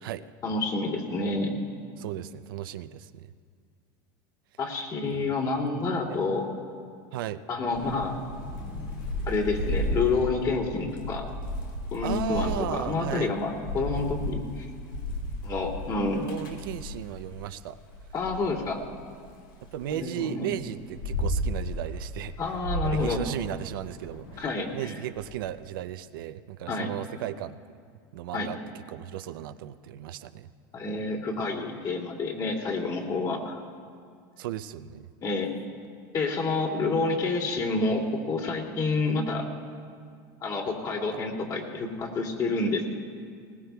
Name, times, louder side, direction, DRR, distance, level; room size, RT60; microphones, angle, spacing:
voice 1, 0.4-1.6 4.6-6.5 7.5-8.2 9.3-11.3 11.9-14.7 15.4-16.3 18.1-18.8 19.9-20.5 22.4-23.2 24.4-24.9 26.7-26.9 28.3-28.5 30.7-33.6 35.2-35.5 36.1-39.5 40.4-42.9, left 3 dB, 35° left, -1 dB, 2.5 m, -28 dB
voice 2, 2.0-3.3 5.1-5.3 6.1-6.2 7.1-7.4 12.0-13.3 16.1-17.8 19.6-22.3 22.8-24.4 24.7-27.6 28.1-28.6 28.9-30.5 34.4-35.1, right 12 dB, 90° right, 10 dB, 0.5 m, -35 dB
Thunder / Rain, 7.7-17.4 17.9-19.9 20.5-25.3, left 1 dB, 90° left, 2.7 m, -34 dB
20.5 x 20.0 x 2.3 m, 2.1 s
supercardioid pair, 130°, 11 cm